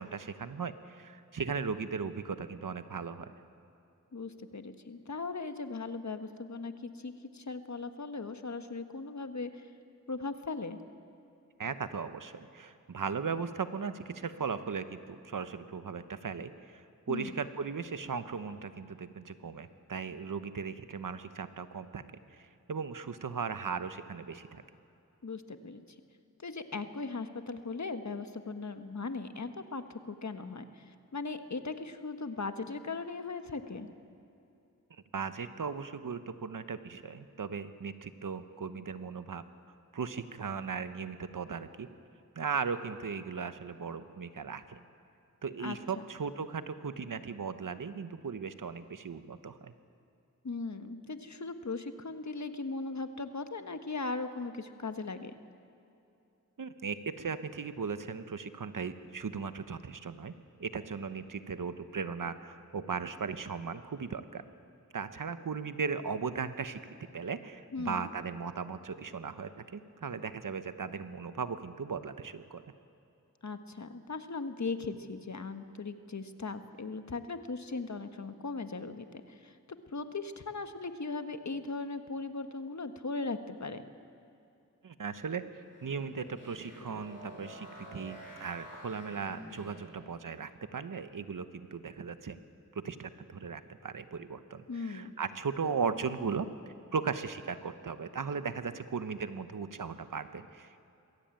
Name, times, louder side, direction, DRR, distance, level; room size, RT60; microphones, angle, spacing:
voice 1, 0.0-3.3 11.6-24.6 35.1-39.4 39.9-41.9 42.4-44.8 45.4-49.7 56.6-60.3 60.6-64.5 64.9-66.8 67.1-72.6 84.8-92.4 92.7-100.8, right 5 dB, 80° right, 11 dB, 1.0 m, -37 dB
voice 2, 4.1-9.7 10.1-10.8 17.1-17.4 25.2-25.8 26.4-30.8 31.1-33.9 45.6-46.1 50.4-55.3 67.7-68.1 73.4-79.5 79.9-83.8 94.7-95.1, left 3 dB, 60° left, 8 dB, 1.4 m, -38 dB
sound 1, 85.6-90.1, equal, 80° left, 7.1 m, -49 dB
21.5 x 16.0 x 9.0 m, 2.6 s
cardioid pair, 40°, 32 cm